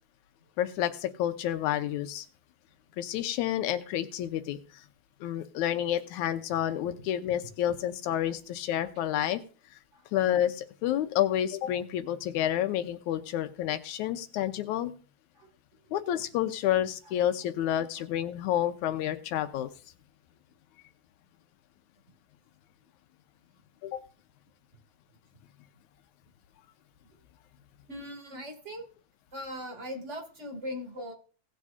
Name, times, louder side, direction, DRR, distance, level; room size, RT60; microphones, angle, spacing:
voice 1, 0.6-2.3 3.0-4.6 5.2-9.4 10.1-14.9 15.9-19.7 23.8-24.0, left 11 dB, 90° left, 10 dB, 2.3 m, -29 dB
voice 2, 27.9-28.8 29.3-31.1, equal, 25° right, 2 dB, 2.7 m, -39 dB
18.0 x 8.5 x 2.7 m, 0.40 s
omnidirectional pair, 3.4 m